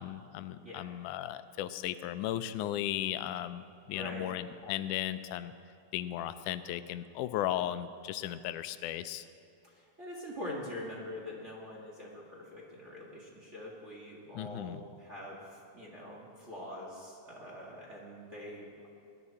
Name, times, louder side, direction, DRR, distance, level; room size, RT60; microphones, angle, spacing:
voice 1, 0.0-5.5 5.9-9.3 14.4-14.8, left 12 dB, 85° left, 12 dB, 2.1 m, -36 dB
voice 2, 3.9-4.3 9.6-18.9, left 1 dB, 30° right, -4 dB, 1.7 m, -44 dB
20.0 x 11.0 x 4.2 m, 2.6 s
omnidirectional pair, 3.5 m